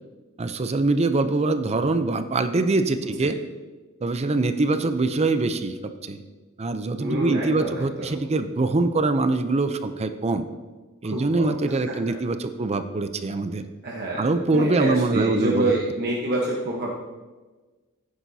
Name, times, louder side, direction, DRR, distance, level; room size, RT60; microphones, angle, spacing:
voice 1, 0.4-3.4 4.0-6.2 6.6-10.4 11.0-13.6 14.2-15.7, right 3 dB, 30° right, 9 dB, 0.5 m, -23 dB
voice 2, 7.0-8.2 11.0-12.0 13.8-17.0, right 2 dB, 50° right, -3 dB, 1.1 m, -27 dB
13.5 x 10.0 x 2.8 m, 1.3 s
head